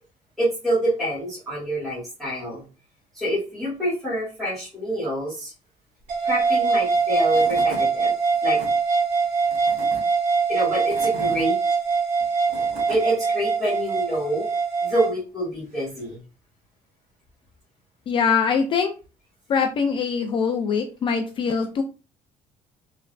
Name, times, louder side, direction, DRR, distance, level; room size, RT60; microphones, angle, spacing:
voice 1, 0.4-2.6 3.1-5.5 6.2-8.1 8.4-8.6 10.5-11.6 12.9-14.5 14.8-16.2, right 1 dB, ahead, -11 dB, 1.5 m, -26 dB
sound 1, 6.1-15.1, right 4 dB, 60° right, 1.4 m, -23 dB
Tools / Wood, 6.9-7.0 7.3-7.9 8.3-8.7 9.4-10.0 10.6-11.5 12.2-13.0, right 2 dB, 80° right, 1.1 m, -38 dB
voice 2, 18.1-18.9 19.5-21.8, left 6 dB, 35° left, 5 dB, 0.4 m, -23 dB
3.2 x 2.9 x 2.5 m, 0.32 s
cardioid pair, 170°, 15 cm